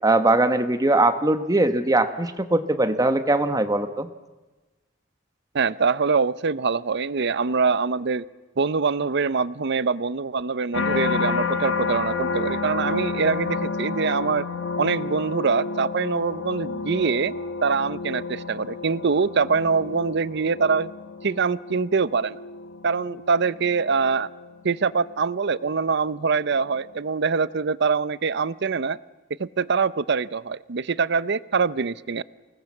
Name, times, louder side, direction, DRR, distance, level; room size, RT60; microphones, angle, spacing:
voice 1, 0.0-4.1, right 2 dB, 20° right, 9 dB, 1.1 m, -21 dB
voice 2, 5.5-8.2 8.6-14.4 14.8-17.3 17.6-20.9 21.2-22.4 22.8-24.3 24.6-29.0 29.4-32.2, right 5 dB, 60° right, 18 dB, 0.7 m, -24 dB
sound 1, 10.7-25.9 26.4-26.9, left 4 dB, 80° left, 2.0 m, -31 dB
27.0 x 19.5 x 7.2 m, 1.1 s
head